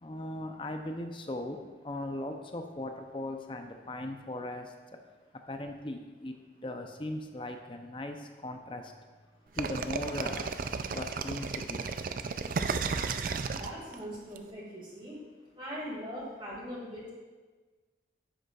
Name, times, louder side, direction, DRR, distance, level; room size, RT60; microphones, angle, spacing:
voice 1, 0.0-4.7 5.5-6.3 6.6-8.9 9.5-10.5 10.9-11.8, left 1 dB, 30° left, 5 dB, 0.6 m, -38 dB
sound 1, 9.6-14.4, right 5 dB, 50° right, 0.4 m, -33 dB
voice 2, 13.5-15.2 15.6-17.1, equal, 30° right, -5 dB, 2.2 m, -41 dB
9.9 x 8.0 x 2.4 m, 1.4 s
head